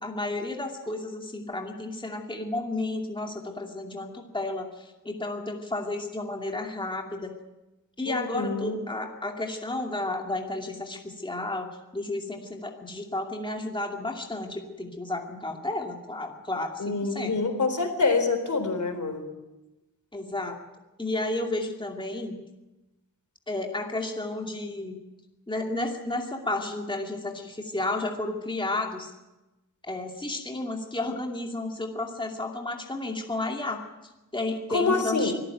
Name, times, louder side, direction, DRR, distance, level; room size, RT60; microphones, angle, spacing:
voice 1, 0.0-7.3 8.0-17.3 20.1-20.6 21.0-22.4 23.5-25.0 25.5-29.1 29.8-33.8 34.3-35.3, left 2 dB, 15° left, 2 dB, 2.5 m, -32 dB
voice 2, 8.1-8.8 16.8-19.3 34.7-35.3, left 4 dB, 55° left, 7 dB, 4.0 m, -26 dB
23.5 x 14.5 x 9.3 m, 1.0 s
wide cardioid pair, 110°, 35 cm